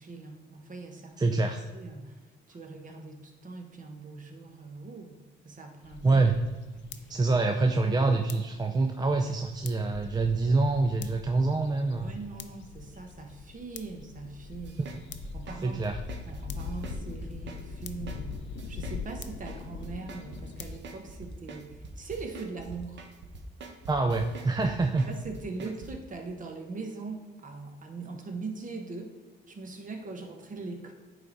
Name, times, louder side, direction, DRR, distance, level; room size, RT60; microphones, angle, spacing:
voice 1, 0.0-1.4 1.7-2.2 2.5-5.2 5.4-6.2 6.8-7.1 12.0-14.8 15.3-15.8 16.2-18.4 18.7-23.0 25.1-29.1 29.5-30.9, right 4 dB, 40° right, 4 dB, 1.1 m, -41 dB
voice 2, 1.2-1.7 6.0-6.3 7.1-12.2 15.6-16.0 23.9-25.1, right 3 dB, 20° right, 4 dB, 0.4 m, -26 dB
sound 1, 5.8-20.8, left 6 dB, 70° left, 0.5 m, -43 dB
sound 2, 14.6-25.9, right 4 dB, 65° right, 0.9 m, -44 dB
9.1 x 3.3 x 3.9 m, 1.2 s
cardioid pair, 90°, 20 cm